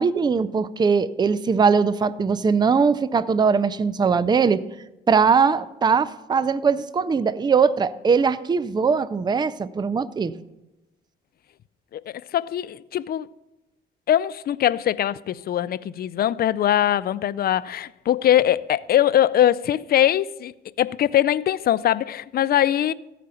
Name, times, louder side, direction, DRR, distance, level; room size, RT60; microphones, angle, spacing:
voice 1, 0.0-4.6 5.1-10.4, right 5 dB, 20° right, 0.4 m, -20 dB
voice 2, 12.3-13.3 14.1-20.5 20.8-22.9, left 11 dB, 50° left, 0.4 m, -21 dB
14.0 x 5.1 x 6.9 m
cardioid pair, 90°, 20 cm